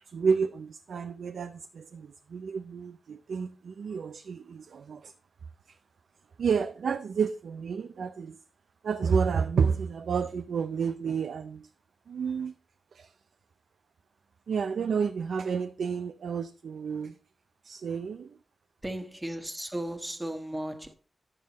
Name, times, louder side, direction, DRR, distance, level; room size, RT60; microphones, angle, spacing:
voice 1, 0.0-5.1 5.7-5.8 6.4-8.4 8.8-11.7 12.1-12.6 12.9-13.1 14.5-17.2 17.6-18.4, right 6 dB, 80° right, 0.5 m, -30 dB
voice 2, 18.8-20.9, right 1 dB, 10° right, 1.2 m, -35 dB
10.5 x 7.6 x 4.1 m
wide cardioid pair, 165°, 0 cm